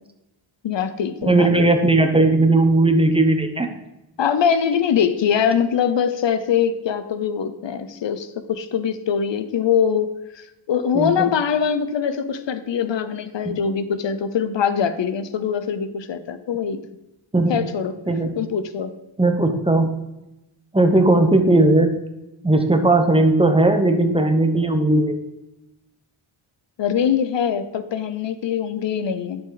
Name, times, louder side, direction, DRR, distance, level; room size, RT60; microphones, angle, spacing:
voice 1, 0.6-1.7 4.2-10.1 10.3-16.8 17.5-18.0 18.4-18.9 26.8-29.4, left 7 dB, 60° left, 11 dB, 0.8 m, -23 dB
voice 2, 1.2-3.7 10.9-11.3 13.4-13.6 17.3-17.6 18.1-18.3 19.2-19.9 20.7-22.0 22.4-25.2, right 2 dB, 10° right, 6 dB, 1.0 m, -17 dB
11.0 x 7.2 x 4.0 m, 0.94 s
wide cardioid pair, 115°, 50 cm